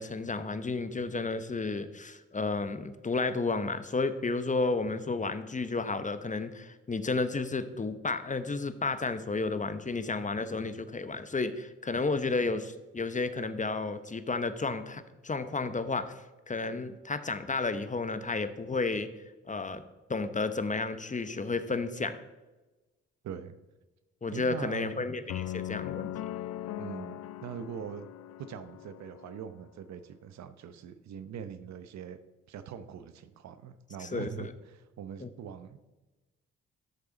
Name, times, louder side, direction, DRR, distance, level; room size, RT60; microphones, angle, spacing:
voice 1, 0.0-19.1 19.5-19.8 20.1-22.2 24.2-26.1 34.0-34.5 35.2-35.3, left 3 dB, 25° left, 12 dB, 0.9 m, -32 dB
voice 2, 23.2-23.6 24.3-25.1 26.8-28.1 28.4-32.2 32.5-35.9, right 8 dB, 70° right, 12 dB, 0.8 m, -42 dB
sound 1, 25.3-29.4, left 13 dB, 65° left, 0.5 m, -39 dB
13.0 x 6.8 x 4.0 m, 1.1 s
supercardioid pair, 50°, 29 cm